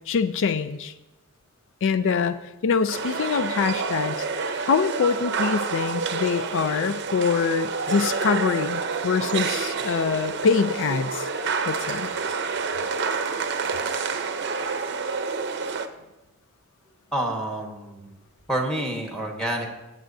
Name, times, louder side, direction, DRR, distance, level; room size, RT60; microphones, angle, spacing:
voice 1, 0.1-0.9 1.8-2.4 2.6-11.3 11.7-12.1, left 5 dB, 55° left, 12 dB, 0.4 m, -24 dB
sound 1, 2.9-15.9, right 5 dB, 50° right, 0.6 m, -28 dB
voice 2, 17.1-18.1 18.5-19.7, right 1 dB, 5° left, 1 dB, 1.2 m, -28 dB
17.0 x 7.5 x 2.7 m, 1.0 s
head